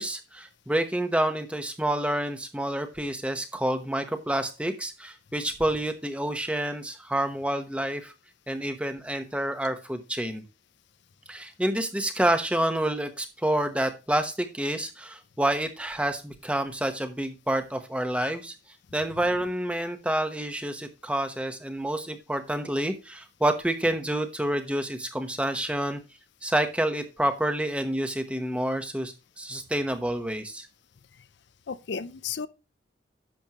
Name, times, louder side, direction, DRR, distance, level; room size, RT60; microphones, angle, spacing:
voice 1, 0.0-8.1 8.5-10.4 11.3-18.5 18.9-26.0 26.4-30.7, right 1 dB, 5° right, 0.9 m, -28 dB
voice 2, 31.7-32.5, left 6 dB, 65° left, 0.5 m, -33 dB
10.5 x 7.1 x 3.0 m
head